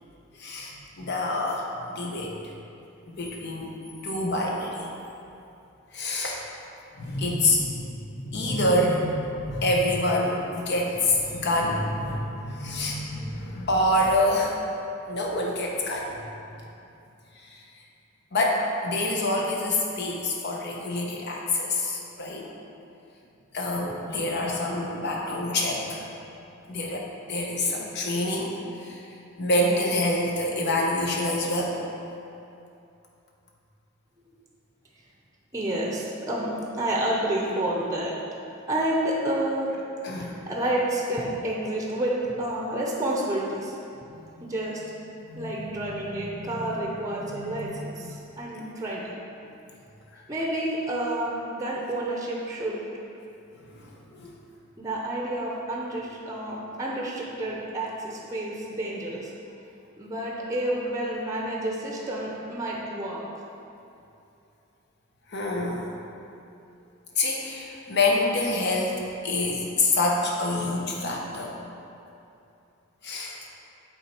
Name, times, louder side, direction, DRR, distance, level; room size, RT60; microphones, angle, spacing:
voice 1, 0.4-2.4 3.1-3.7 4.0-4.9 5.9-6.4 7.0-14.6 15.1-16.3 17.4-17.6 18.3-22.5 23.5-26.1 26.7-29.0 29.4-31.8 40.0-40.5 44.1-44.5 45.3-46.8 47.1-47.8 50.1-50.2 53.6-54.4 65.3-65.9 67.2-71.6 73.0-73.4, left 1 dB, 55° left, -1 dB, 1.0 m, -27 dB
voice 2, 35.5-38.1 38.7-39.7 40.2-43.8 44.4-44.8 45.3-49.1 50.3-52.8 54.8-59.3 60.0-63.2, right 1 dB, 15° right, -3 dB, 0.7 m, -29 dB
7.2 x 4.2 x 4.4 m, 2.7 s
head